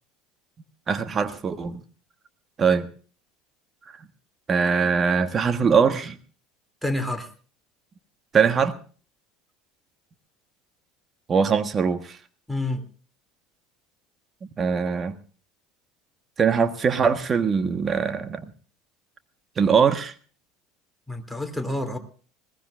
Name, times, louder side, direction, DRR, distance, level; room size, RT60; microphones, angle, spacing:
voice 1, 0.9-1.8 2.6-2.9 4.5-6.2 8.3-8.8 11.3-12.2 14.6-15.2 16.4-18.4 19.6-20.1, right 6 dB, 30° right, 1.4 m, -22 dB
voice 2, 6.8-7.3 12.5-12.8 21.1-22.0, left 1 dB, ahead, 3.0 m, -28 dB
21.0 x 18.5 x 2.5 m
hypercardioid pair, 75°, 0 cm